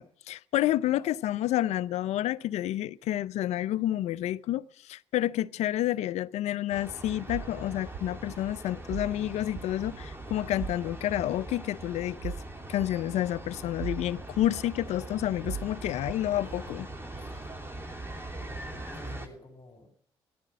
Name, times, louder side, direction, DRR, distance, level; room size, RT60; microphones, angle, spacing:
voice 1, 0.0-12.4 12.7-16.9, left 13 dB, 70° left, 0.5 m, -29 dB
sound 1, 6.7-19.3, right 2 dB, 20° right, 2.7 m, -41 dB
sound 2, 7.3-7.5 7.9-8.1 8.9-9.1 9.6-9.7 10.6-10.8 11.2-11.3 12.2-12.4 12.8-12.9 13.8-14.1 14.4-14.5 15.4-15.7 16.1-16.2, right 7 dB, 50° right, 0.6 m, -37 dB
voice 2, 18.4-20.0, left 2 dB, 30° left, 3.8 m, -51 dB
14.0 x 11.0 x 6.3 m
hypercardioid pair, 50°, 12 cm